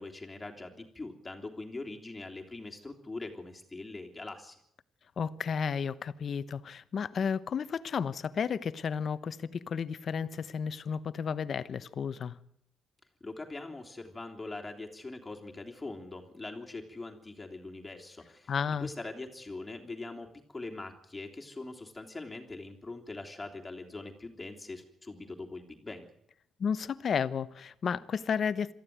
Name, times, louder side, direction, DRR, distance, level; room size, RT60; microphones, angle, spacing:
voice 1, 0.0-4.6 13.2-18.5 18.8-26.1, left 2 dB, 20° left, 3.3 m, -42 dB
voice 2, 5.2-12.4 18.5-18.9 26.6-28.7, left 6 dB, 50° left, 1.0 m, -32 dB
23.0 x 14.5 x 9.4 m
cardioid pair, 90°, 0 cm